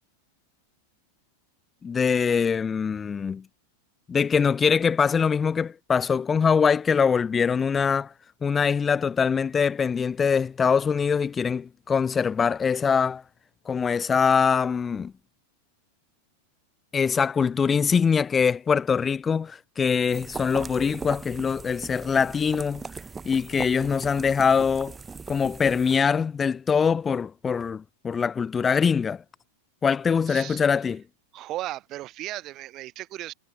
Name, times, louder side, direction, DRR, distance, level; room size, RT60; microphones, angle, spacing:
voice 1, 1.8-3.4 4.1-8.1 8.4-13.2 13.7-15.1 16.9-22.8 23.2-25.0 25.3-29.2 29.8-31.0, left 6 dB, 20° left, 0.8 m, -23 dB
sound 1, 20.1-26.0, right 4 dB, 15° right, 3.7 m, -39 dB
voice 2, 30.3-30.6 31.3-33.3, right 15 dB, 35° right, 2.3 m, -36 dB
figure-of-eight pair, 90°, 0 cm